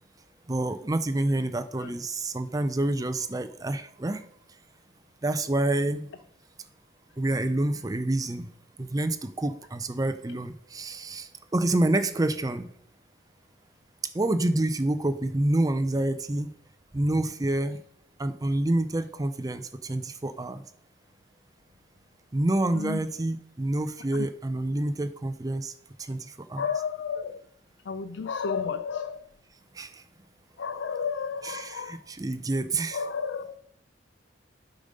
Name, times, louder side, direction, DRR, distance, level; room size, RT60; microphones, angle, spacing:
voice 1, 0.5-4.2 5.2-6.1 7.2-8.5 8.8-12.7 14.1-16.5 16.9-17.8 18.2-20.6 22.3-25.7 26.0-26.6 29.7-30.0 31.4-33.0, right 1 dB, 20° right, 11 dB, 0.5 m, -28 dB
voice 2, 22.7-23.1 24.1-24.3 26.6-27.4 27.8-29.3 30.6-32.1 32.9-33.6, left 6 dB, 75° left, 11 dB, 0.4 m, -32 dB
8.5 x 5.1 x 5.4 m, 0.68 s
head